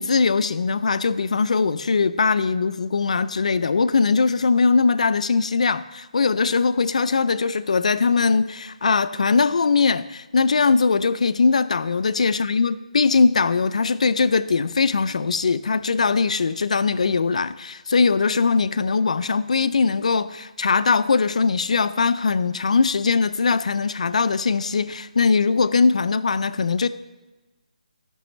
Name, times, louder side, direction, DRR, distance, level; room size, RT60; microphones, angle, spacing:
voice 1, 0.0-26.9, left 4 dB, 60° left, 14 dB, 0.4 m, -21 dB
14.0 x 6.0 x 3.1 m, 1.2 s
hypercardioid pair, 170°, 4 cm